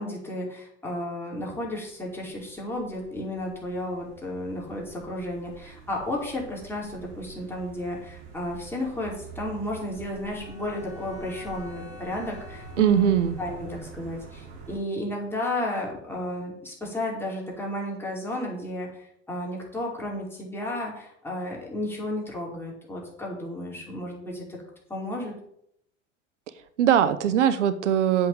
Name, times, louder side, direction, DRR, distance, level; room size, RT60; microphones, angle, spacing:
voice 1, 0.0-13.1 13.4-24.6 24.9-25.3, left 1 dB, 5° left, -3 dB, 5.1 m, -33 dB
sound 1, 1.5-14.8, right 5 dB, 60° right, 3.5 m, -46 dB
Bowed string instrument, 10.3-13.8, left 4 dB, 10° right, 3.3 m, -48 dB
voice 2, 12.8-13.3 26.8-28.3, right 9 dB, 75° right, 13 dB, 0.8 m, -21 dB
8.0 x 6.8 x 7.6 m, 0.73 s
hypercardioid pair, 80°, 36 cm